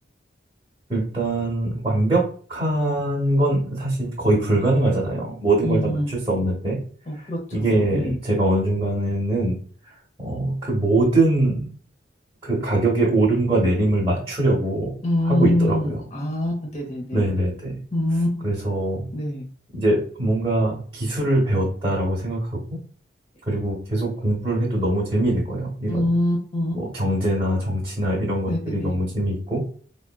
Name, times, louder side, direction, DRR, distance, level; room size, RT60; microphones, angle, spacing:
voice 1, 0.9-6.8 7.5-9.6 10.2-11.7 12.4-14.9 15.2-16.0 17.1-17.8 18.4-19.1 19.7-22.8 23.5-26.1 26.7-29.6, right 1 dB, 20° right, -4 dB, 1.0 m, -22 dB
voice 2, 5.6-6.1 7.1-8.2 15.0-17.3 17.9-18.4 19.1-19.4 25.9-26.8 28.5-29.0, left 1 dB, 35° left, -1 dB, 0.6 m, -24 dB
3.6 x 2.1 x 2.2 m, 0.44 s
head